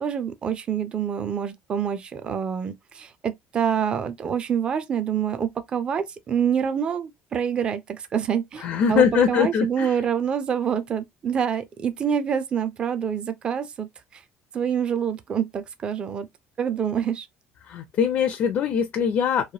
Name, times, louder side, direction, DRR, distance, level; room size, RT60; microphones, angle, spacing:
voice 1, 0.0-13.9 14.1-14.2 14.5-16.3 16.6-17.3, right 8 dB, 25° right, 0.4 m, -26 dB
voice 2, 8.6-10.0 17.6-19.5, left 7 dB, 45° left, 0.4 m, -22 dB
3.1 x 2.1 x 2.7 m
cardioid pair, 170°, 4 cm